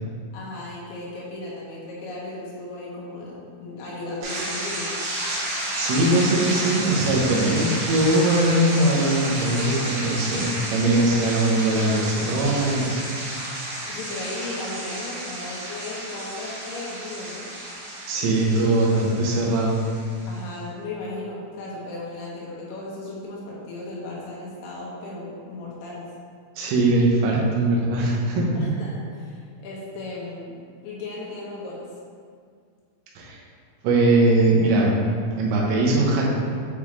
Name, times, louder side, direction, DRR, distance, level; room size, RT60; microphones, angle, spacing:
voice 1, 0.3-4.9 11.0-11.4 13.9-17.5 20.3-26.0 28.6-30.6 30.8-31.9, left 2 dB, 75° left, -6 dB, 3.0 m, -36 dB
sound 1, 4.2-20.4, right 1 dB, 65° right, 3.3 m, -31 dB
voice 2, 5.7-13.0 18.1-19.7 26.6-28.7 33.2-33.4 33.8-34.9 35.4-36.3, right 2 dB, 90° right, -4 dB, 3.5 m, -21 dB
8.4 x 3.6 x 3.1 m, 2.1 s
omnidirectional pair, 5.7 m